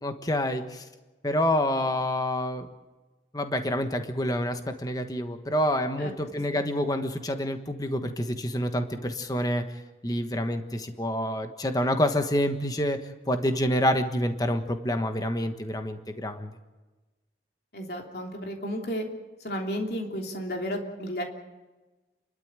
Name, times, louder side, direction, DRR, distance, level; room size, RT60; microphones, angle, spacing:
voice 1, 0.0-0.8 1.2-2.7 3.3-9.6 10.0-13.0 13.3-16.5, equal, 20° left, 7 dB, 1.3 m, -27 dB
voice 2, 17.7-19.1 19.4-21.2, equal, 60° left, 2 dB, 3.1 m, -33 dB
29.5 x 12.5 x 8.9 m, 1.2 s
head